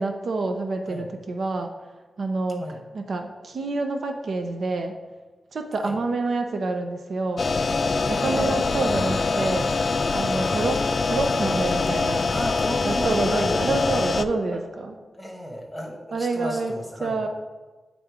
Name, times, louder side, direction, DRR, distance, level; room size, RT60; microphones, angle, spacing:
voice 1, 0.0-1.8 2.2-2.7 2.9-5.0 5.5-7.4 8.1-9.8 10.1-12.3 12.8-14.9 16.1-16.7 17.0-17.3, right 3 dB, 60° right, 5 dB, 0.5 m, -27 dB
sound 1, 7.4-14.2, left 4 dB, 45° left, 0.3 m, -24 dB
voice 2, 8.3-9.0 10.4-10.7 12.3-13.6 14.5-14.6 15.1-17.3, equal, ahead, 0 dB, 1.1 m, -34 dB
8.6 x 3.7 x 4.8 m, 1.3 s
wide cardioid pair, 155°, 0 cm